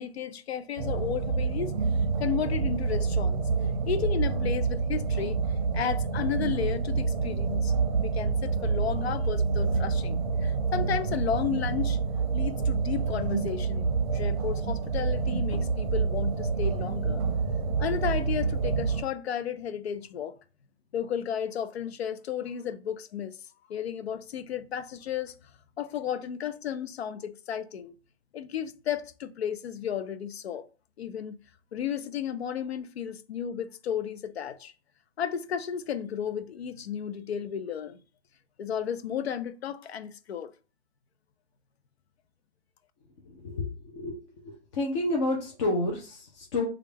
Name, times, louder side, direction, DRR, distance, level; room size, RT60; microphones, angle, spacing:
voice 1, 0.0-1.8 2.2-3.5 3.9-5.4 5.7-12.0 12.3-17.2 17.8-20.3 20.9-23.4 23.7-25.3 25.8-27.9 28.3-30.7 31.0-31.4 31.7-34.7 35.2-38.0 38.6-40.5, left 8 dB, 70° left, 0.6 m, -33 dB
sound 1, 0.8-19.0, right 4 dB, 35° right, 0.7 m, -27 dB
voice 2, 43.3-43.7 43.9-44.2 44.4-46.7, left 2 dB, 25° left, 0.6 m, -29 dB
3.2 x 2.4 x 3.3 m
hypercardioid pair, 150°, 34 cm